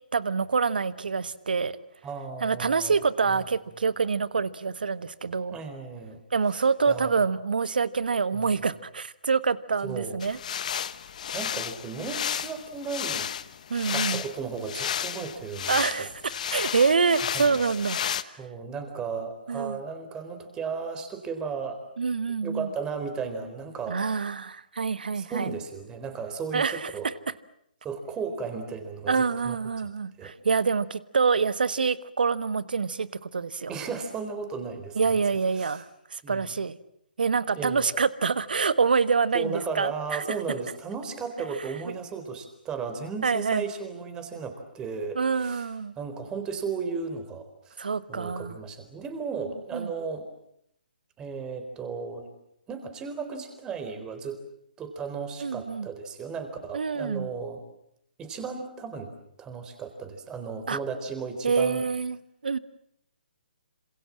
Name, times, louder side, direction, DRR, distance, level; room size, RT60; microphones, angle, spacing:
voice 1, 0.1-1.8 2.4-5.6 6.3-10.4 13.7-14.2 15.7-18.0 19.5-19.8 22.0-22.7 23.9-25.5 26.5-26.9 29.1-33.7 34.9-36.8 37.2-40.4 43.2-43.6 45.1-45.9 47.8-48.6 49.7-49.9 55.4-55.9 56.7-57.3 60.7-60.8 61.4-62.6, right 5 dB, 70° right, 15 dB, 1.5 m, -26 dB
voice 2, 2.0-3.0 3.3-3.4 5.5-6.2 6.9-7.3 8.3-8.5 9.8-10.2 11.3-13.3 13.9-16.1 17.3-17.6 18.4-21.8 22.4-24.0 25.1-27.1 27.8-29.6 30.2-30.3 33.7-35.2 35.6-35.8 36.2-36.5 37.5-37.9 39.3-45.7 46.0-47.8 48.1-50.3 51.2-52.3 52.7-54.4 54.8-57.6 58.2-59.1 59.4-61.9, right 5 dB, 15° right, 8 dB, 4.2 m, -35 dB
sound 1, 10.2-18.2, left 9 dB, 50° left, 1.3 m, -32 dB
27.5 x 27.0 x 7.5 m, 0.75 s
figure-of-eight pair, 140°, 5 cm